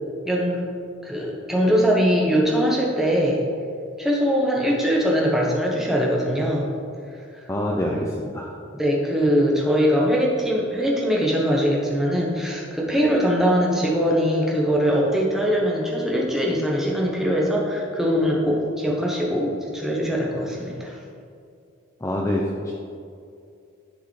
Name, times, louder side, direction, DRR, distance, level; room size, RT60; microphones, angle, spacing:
voice 1, 0.2-0.6 1.0-3.4 4.0-6.7 7.3-7.4 8.7-20.9, equal, ahead, -3 dB, 0.9 m, -22 dB
voice 2, 7.5-8.5 22.0-22.7, left 1 dB, 15° left, -1 dB, 0.4 m, -25 dB
10.5 x 4.7 x 3.2 m, 2.4 s
head